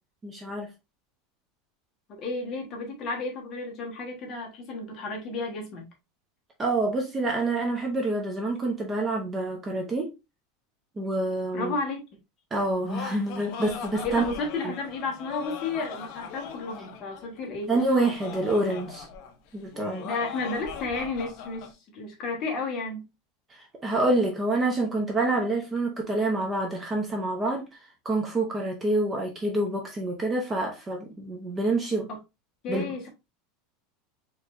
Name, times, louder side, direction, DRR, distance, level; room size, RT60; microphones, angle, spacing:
voice 1, 0.2-0.7 6.6-10.1 11.0-11.7 12.5-14.2 14.6-14.7 17.7-19.1 19.5-20.1 23.5-27.8 28.0-32.1 32.7-33.1, right 2 dB, 15° right, 0.6 m, -27 dB
voice 2, 2.1-5.9 11.5-12.0 14.0-17.7 20.0-23.0 32.1-32.2 32.6-33.1, left 3 dB, 30° left, 1.2 m, -32 dB
Laughter, 12.6-21.7, left 6 dB, 45° left, 0.6 m, -40 dB
4.3 x 3.0 x 2.5 m
supercardioid pair, 170°, 0 cm